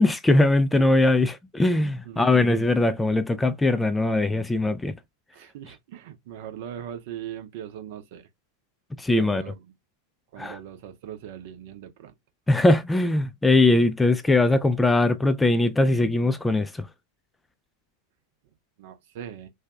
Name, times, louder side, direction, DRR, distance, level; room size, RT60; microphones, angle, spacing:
voice 1, 0.0-4.9 9.0-9.4 10.4-10.6 12.5-16.9, left 2 dB, 10° left, 0.3 m, -21 dB
voice 2, 2.0-2.4 5.3-8.3 9.2-9.7 10.3-12.1 18.8-19.5, right 10 dB, 50° right, 0.7 m, -40 dB
2.7 x 2.3 x 3.5 m
figure-of-eight pair, 90°, 0 cm